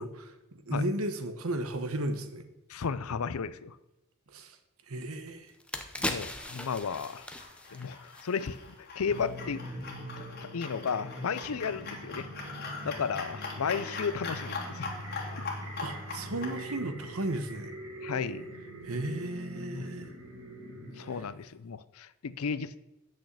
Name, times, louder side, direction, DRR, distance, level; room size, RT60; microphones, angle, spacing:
voice 1, 0.0-2.5 4.3-4.6 4.9-5.5 15.8-17.7 18.8-20.1, right 1 dB, 80° right, 9 dB, 1.1 m, -34 dB
voice 2, 2.7-3.8 6.0-7.3 7.7-9.6 10.2-12.3 12.8-14.9 15.4-15.5 18.0-18.5 19.7-19.9 20.8-22.8, left 6 dB, 85° left, 16 dB, 0.5 m, -34 dB
sound 1, 5.0-5.1 5.5-8.8 9.1-9.3, left 1 dB, 5° left, 0.7 m, -38 dB
sound 2, 6.1-16.6, left 4 dB, 50° left, 2.2 m, -42 dB
sound 3, 9.1-21.2, equal, 65° right, 2.2 m, -43 dB
8.4 x 6.5 x 8.0 m, 0.93 s
head